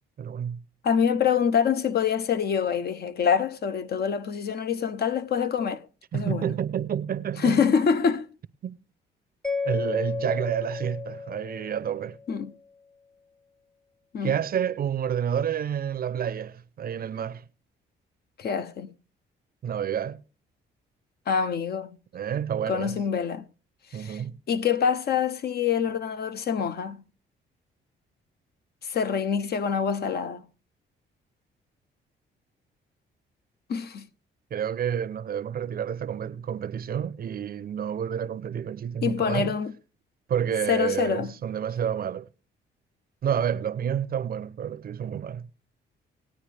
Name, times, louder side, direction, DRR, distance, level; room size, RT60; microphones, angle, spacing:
voice 1, 0.2-0.6 6.1-7.6 8.6-8.8 9.6-12.2 14.2-17.4 19.6-20.2 22.1-23.0 23.9-24.3 34.5-39.5 40.3-42.3 43.2-45.5, right 8 dB, 50° right, 0.6 m, -29 dB
voice 2, 0.8-5.8 6.1-6.5 7.4-8.3 12.3-12.5 14.1-14.4 18.4-18.9 21.3-21.9 22.7-23.5 24.0-24.2 24.5-27.0 28.8-30.5 33.7-34.1 39.0-39.7 40.7-41.3, left 7 dB, 55° left, 0.7 m, -25 dB
Mallet percussion, 9.4-12.4, left 4 dB, 5° left, 0.5 m, -33 dB
19.0 x 9.1 x 3.3 m
cardioid pair, 90°, 20 cm